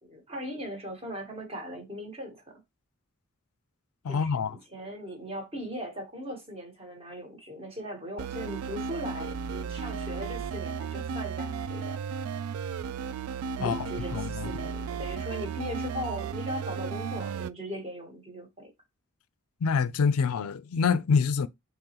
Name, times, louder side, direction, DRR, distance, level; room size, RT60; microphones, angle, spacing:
voice 1, 0.0-2.6 4.1-12.0 13.6-18.7, equal, 25° right, 1.2 m, -39 dB
voice 2, 4.0-4.6 13.6-14.6 19.6-21.5, left 5 dB, 90° left, 0.4 m, -26 dB
sound 1, 8.2-17.5, right 6 dB, 80° right, 0.3 m, -34 dB
3.8 x 3.0 x 2.9 m
head